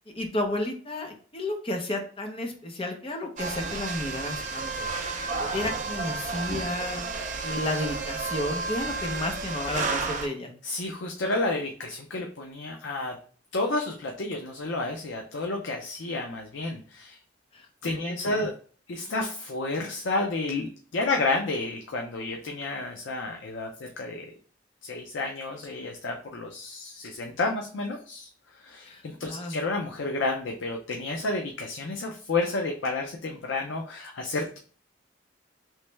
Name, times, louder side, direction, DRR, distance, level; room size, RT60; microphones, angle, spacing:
voice 1, 0.1-10.5 17.5-18.5 28.8-29.6, left 1 dB, 30° left, 3 dB, 0.7 m, -33 dB
sound 1, 3.4-10.3, right 3 dB, 40° right, 0.5 m, -32 dB
voice 2, 10.6-13.1 13.5-17.2 17.8-18.5 18.9-24.3 24.8-28.3 28.6-34.6, left 2 dB, 75° left, 2 dB, 0.5 m, -31 dB
3.2 x 3.0 x 3.2 m, 0.43 s
head